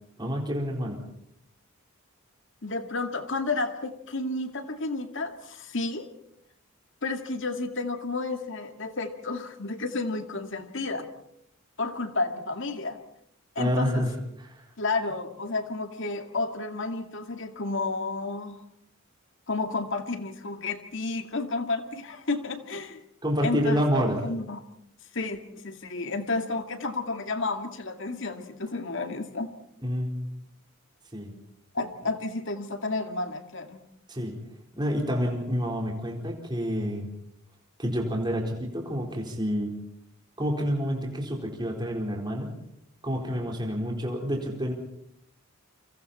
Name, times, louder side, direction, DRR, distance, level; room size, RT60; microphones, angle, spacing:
voice 1, 0.2-1.0 13.6-14.1 14.4-14.6 23.2-24.2 29.8-30.4 31.1-31.3 34.1-34.4 34.7-37.1 37.8-39.7 40.4-42.5 43.0-44.7, equal, 20° right, 0 dB, 4.2 m, -28 dB
voice 2, 2.6-6.1 7.0-11.1 11.8-13.0 13.6-14.0 14.8-18.6 19.5-23.0 23.4-24.6 25.1-29.5 31.7-33.8, left 3 dB, 60° left, 7 dB, 2.2 m, -31 dB
29.5 x 25.5 x 4.4 m, 0.74 s
head